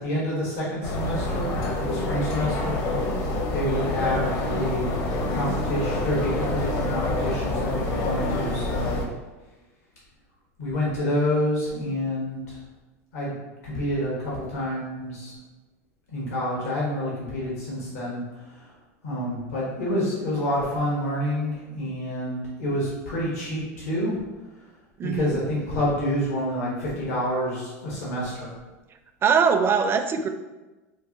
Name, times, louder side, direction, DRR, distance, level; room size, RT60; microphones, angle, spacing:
voice 1, 0.0-1.5 1.8-3.1 3.5-4.9 5.3-9.0 10.6-12.5 13.1-13.3 13.6-15.3 16.1-18.2 19.0-24.1 25.0-28.5, left 1 dB, 80° left, -5 dB, 1.1 m, -28 dB
sound 1, 0.8-9.1, left 2 dB, 50° left, 0.7 m, -27 dB
voice 2, 25.0-25.4 29.2-30.3, right 6 dB, 30° right, 7 dB, 0.4 m, -21 dB
4.5 x 2.4 x 2.6 m, 1.1 s
hypercardioid pair, 90°, 8 cm